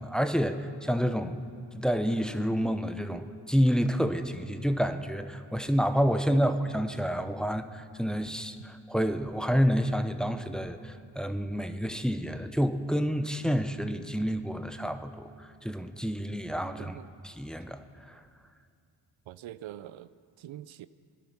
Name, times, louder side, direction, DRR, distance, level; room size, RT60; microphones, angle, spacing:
voice 1, 0.0-1.4 1.7-17.0 17.2-18.2, equal, ahead, 8 dB, 0.9 m, -29 dB
voice 2, 19.3-20.1 20.4-20.9, right 13 dB, 85° right, 15 dB, 0.5 m, -43 dB
19.5 x 10.5 x 5.9 m, 2.3 s
cardioid pair, 50°, 45 cm